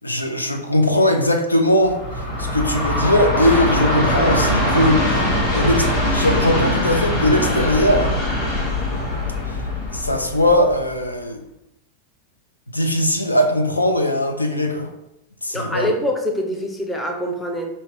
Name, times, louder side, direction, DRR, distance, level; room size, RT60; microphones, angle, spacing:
voice 1, 0.0-5.2 5.5-8.1 9.5-9.6 9.9-11.4 12.7-14.9 15.4-15.9, left 1 dB, 80° left, 5 dB, 0.5 m, -19 dB
Train, 1.8-11.0, left 1 dB, 40° left, 1.1 m, -22 dB
voice 2, 15.5-17.7, equal, 10° left, 2 dB, 0.7 m, -24 dB
5.6 x 2.6 x 3.2 m, 0.86 s
figure-of-eight pair, 90°, 0 cm